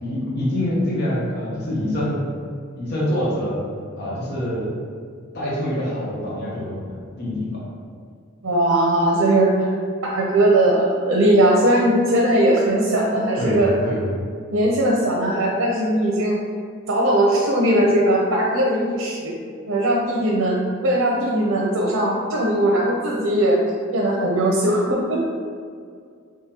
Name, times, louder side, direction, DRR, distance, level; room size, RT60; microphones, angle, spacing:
voice 1, 0.0-2.3 2.8-3.6 4.0-4.7 5.3-6.8 7.2-7.7 13.4-14.2, left 1 dB, 55° left, -6 dB, 0.8 m, -25 dB
voice 2, 8.4-9.5 10.0-13.7 14.5-16.4 16.9-19.3 19.7-23.6 23.9-25.2, right 1 dB, 90° right, -3 dB, 0.6 m, -19 dB
3.7 x 3.0 x 2.8 m, 2.2 s
head